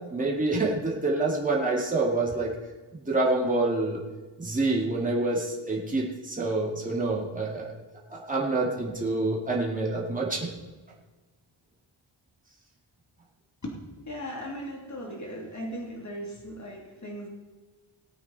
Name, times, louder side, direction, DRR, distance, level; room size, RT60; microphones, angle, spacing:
voice 1, 0.1-2.5 3.1-4.0 4.4-7.7 8.1-10.5, right 2 dB, 15° right, -4 dB, 2.5 m, -27 dB
voice 2, 14.0-17.3, equal, 35° left, -1 dB, 3.0 m, -37 dB
18.5 x 8.7 x 4.2 m, 1.3 s
wide cardioid pair, 90°, 49 cm